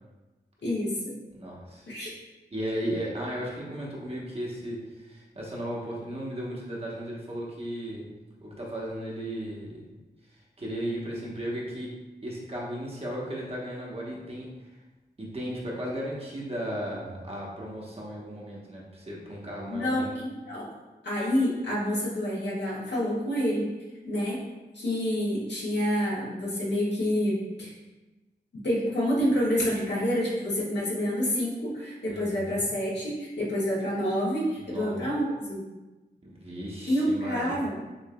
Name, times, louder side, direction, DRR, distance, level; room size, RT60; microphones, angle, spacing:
voice 1, 0.6-1.2 1.9-2.1 19.7-20.7 21.0-23.7 24.0-24.4 24.7-27.7 28.6-35.6 36.9-37.8, equal, 75° left, -7 dB, 1.4 m, -28 dB
voice 2, 1.3-1.9 2.5-8.1 8.4-9.9 10.3-12.0 12.2-14.7 15.2-20.2 32.1-32.6 34.6-34.9 36.2-37.6, equal, 35° right, -4 dB, 1.0 m, -35 dB
6.5 x 2.6 x 2.2 m, 1.2 s
wide cardioid pair, 95°, 18 cm